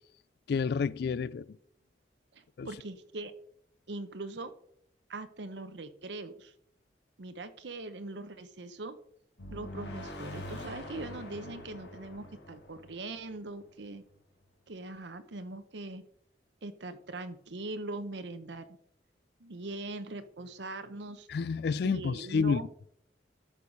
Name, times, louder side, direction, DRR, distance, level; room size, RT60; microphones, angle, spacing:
voice 1, 0.5-1.5 2.6-2.7 21.3-22.6, left 5 dB, 65° left, 0.3 m, -29 dB
voice 2, 2.3-3.3 3.9-4.5 5.1-6.5 7.2-9.0 9.5-14.0 14.7-16.0 16.6-18.7 19.4-21.3 21.8-22.7, right 2 dB, 80° right, 0.8 m, -41 dB
sound 1, 9.4-14.0, left 1 dB, 90° left, 3.6 m, -44 dB
12.5 x 4.9 x 5.4 m
head